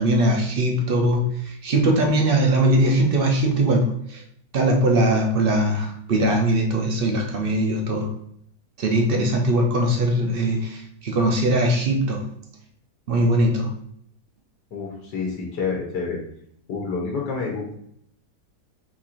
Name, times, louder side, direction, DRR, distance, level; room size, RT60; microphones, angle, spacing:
voice 1, 0.0-4.2 4.5-8.1 8.8-12.3 13.1-13.7, right 1 dB, 60° right, 2 dB, 0.6 m, -21 dB
voice 2, 14.7-16.2 16.7-17.7, left 4 dB, 85° left, -1 dB, 1.5 m, -28 dB
4.4 x 2.5 x 4.3 m, 0.68 s
omnidirectional pair, 1.8 m